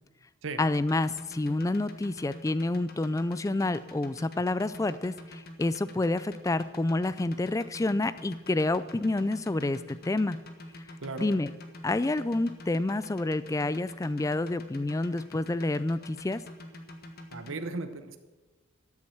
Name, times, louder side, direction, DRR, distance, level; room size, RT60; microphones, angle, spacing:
voice 1, 0.6-10.4 11.2-11.5 11.8-16.4, left 2 dB, 15° left, 16 dB, 0.3 m, -28 dB
sound 1, 0.7-17.6, left 1 dB, 45° left, 1.4 m, -45 dB
voice 2, 17.3-18.2, right 3 dB, 70° right, 9 dB, 0.9 m, -36 dB
13.0 x 7.3 x 7.8 m, 1.3 s
head